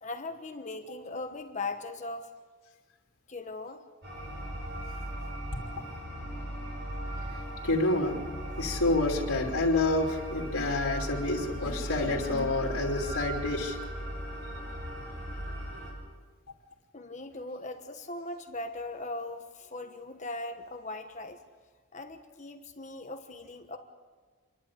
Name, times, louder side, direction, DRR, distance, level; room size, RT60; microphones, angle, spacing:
voice 1, 0.0-2.3 3.3-3.8 16.9-21.4 21.9-23.8, left 2 dB, 30° left, 6 dB, 1.2 m, -39 dB
sound 1, 4.0-15.9, right 1 dB, 50° right, 7.1 m, -38 dB
voice 2, 7.6-8.2 8.6-13.8, left 2 dB, 80° left, -4 dB, 3.0 m, -28 dB
28.0 x 12.0 x 8.6 m, 1.5 s
head